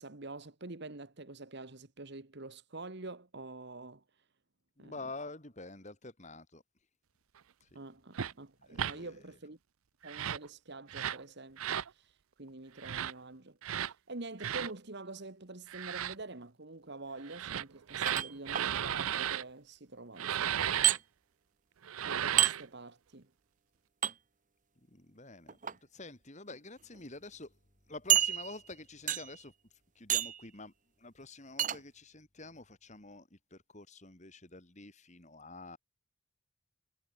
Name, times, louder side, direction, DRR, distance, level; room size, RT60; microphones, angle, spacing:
voice 1, 0.0-4.0 4.8-5.0 7.7-9.6 10.0-12.1 12.4-20.9 22.0-23.3, right 2 dB, 50° right, 1.5 m, -46 dB
voice 2, 4.8-6.6 7.6-7.8 8.6-9.4 24.9-27.5 27.9-29.5 29.9-30.7 31.0-35.8, left 2 dB, 35° left, 2.7 m, -48 dB
sound 1, 8.1-8.3 8.7-8.9 10.0-10.5 10.9-11.2 11.6-11.9 12.8-13.1 13.6-13.9 14.4-14.7 15.7-16.1 17.3-19.4 20.2-21.0 21.8-22.6, right 9 dB, 75° right, 0.6 m, -34 dB
sound 2, 18.1-18.7 20.8-21.0 22.4-22.5 24.0-24.1 25.5-25.7 26.5-26.6 26.9-27.0 28.1-28.7 29.1-29.4 30.1-30.4 31.6-31.8, right 11 dB, 35° right, 0.9 m, -28 dB
head